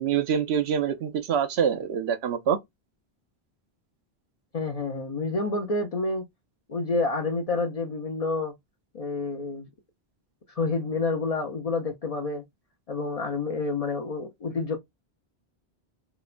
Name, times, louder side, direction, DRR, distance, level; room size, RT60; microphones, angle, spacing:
voice 1, 0.0-2.6, right 8 dB, 80° right, 0.8 m, -25 dB
voice 2, 4.5-6.2 6.7-8.5 8.9-9.7 10.6-12.4 12.9-14.8, left 3 dB, 55° left, 0.4 m, -28 dB
2.9 x 2.0 x 2.4 m
omnidirectional pair, 1.1 m